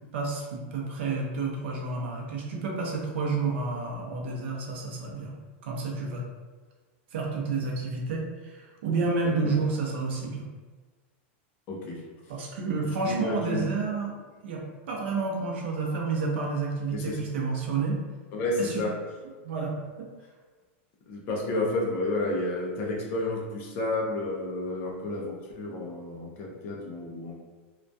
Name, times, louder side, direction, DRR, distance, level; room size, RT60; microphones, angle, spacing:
voice 1, 0.1-5.3 5.6-6.2 7.1-10.5 12.3-14.1 14.4-18.0 18.6-18.8 19.4-20.1, right 4 dB, 65° right, -1 dB, 0.6 m, -30 dB
voice 2, 9.2-9.5 11.7-12.0 12.8-13.7 16.9-17.3 18.3-18.9 21.1-27.4, left 2 dB, 30° left, -2 dB, 0.4 m, -31 dB
2.2 x 2.1 x 2.5 m, 1.4 s
supercardioid pair, 175°, 7 cm